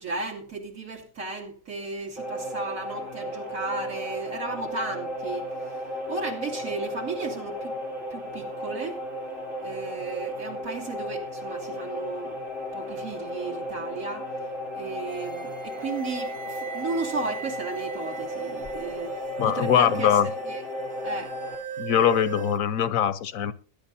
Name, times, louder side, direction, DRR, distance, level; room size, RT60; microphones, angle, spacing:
voice 1, 0.0-7.8 8.1-9.0 9.6-12.4 12.7-14.3 14.7-20.6 21.0-21.3, right 3 dB, 80° right, 3.0 m, -35 dB
sound 1, 2.2-21.5, equal, 60° right, 3.1 m, -34 dB
sound 2, 15.1-22.6, right 6 dB, 40° right, 1.0 m, -40 dB
voice 2, 19.4-20.3 21.8-23.5, left 9 dB, 85° left, 1.3 m, -22 dB
21.0 x 11.0 x 2.7 m
omnidirectional pair, 1.4 m